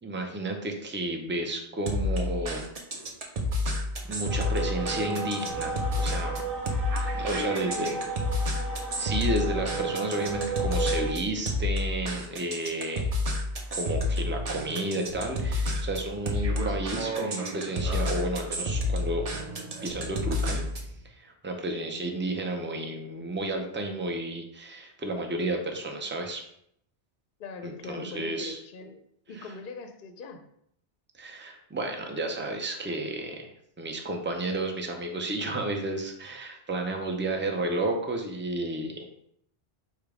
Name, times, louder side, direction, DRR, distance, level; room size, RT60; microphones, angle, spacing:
voice 1, 0.0-2.6 4.1-6.4 7.1-8.0 9.0-13.1 13.7-19.5 19.8-20.7 21.0-26.4 27.6-28.6 29.4-29.5 31.2-39.1, right 2 dB, 15° right, 3 dB, 0.4 m, -32 dB
sound 1, 1.9-20.9, left 1 dB, 40° right, 0.7 m, -30 dB
sound 2, 4.3-11.1, right 3 dB, ahead, 0.8 m, -34 dB
voice 2, 7.1-8.1 27.4-29.0 29.3-30.4, left 4 dB, 60° left, 6 dB, 0.7 m, -41 dB
4.9 x 2.2 x 4.8 m, 0.71 s
omnidirectional pair, 1.1 m